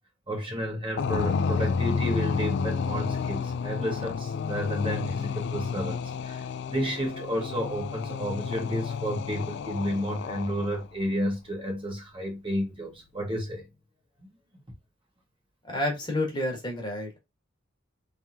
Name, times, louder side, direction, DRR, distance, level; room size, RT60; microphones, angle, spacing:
voice 1, 0.3-13.6, equal, 25° right, 1.4 m, -31 dB
sound 1, 1.0-10.9, left 5 dB, 60° left, 0.3 m, -31 dB
voice 2, 15.6-17.2, left 1 dB, 25° left, 1.5 m, -29 dB
3.5 x 3.5 x 2.8 m
head